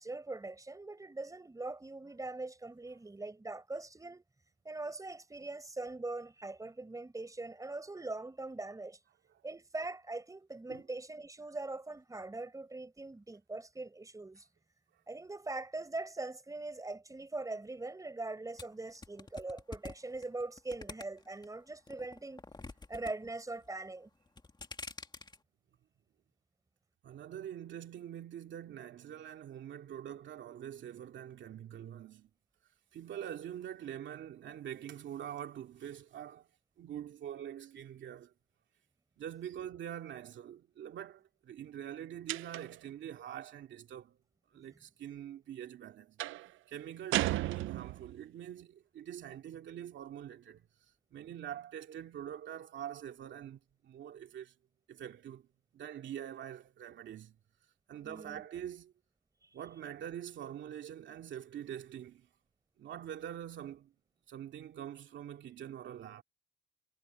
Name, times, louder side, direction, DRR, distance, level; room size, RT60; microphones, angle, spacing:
voice 1, 0.0-4.2 4.6-9.0 9.4-14.5 15.1-22.4 22.9-24.1 58.0-58.5, right 2 dB, 15° right, 5.1 m, -42 dB
sound 1, 18.6-21.4 21.9-23.1 23.4-23.9 24.3-25.4, left 3 dB, 20° left, 2.2 m, -46 dB
voice 2, 27.0-32.3 32.9-36.5 36.8-38.3 39.2-44.2 44.5-46.2 46.7-50.7 51.1-54.5 54.9-55.4 55.7-57.4 57.9-58.9 59.5-62.3 62.8-63.9 64.3-66.2, right 10 dB, 70° right, 2.4 m, -44 dB
sound 2, 42.3-42.9 46.2-46.5 47.1-48.2, right 16 dB, 85° right, 0.6 m, -34 dB
cardioid pair, 90°, 20 cm